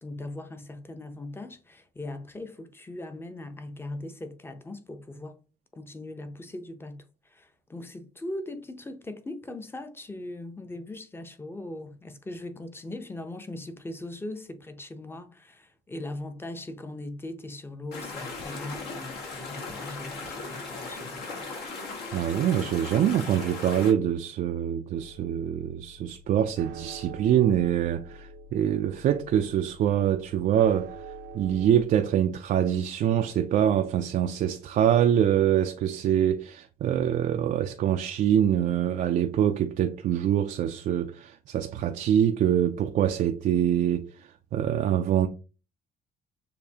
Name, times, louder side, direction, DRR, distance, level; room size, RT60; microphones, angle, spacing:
voice 1, 0.0-5.4 5.8-21.6, left 2 dB, 15° left, 0.6 m, -40 dB
sound 1, 17.9-23.9, left 3 dB, 70° left, 1.4 m, -38 dB
voice 2, 22.1-31.0 31.3-44.1 44.5-45.3, right 10 dB, 50° right, 0.4 m, -24 dB
sound 2, 25.0-31.8, right 3 dB, 80° right, 0.7 m, -45 dB
6.7 x 2.6 x 2.8 m
cardioid pair, 110°, 17 cm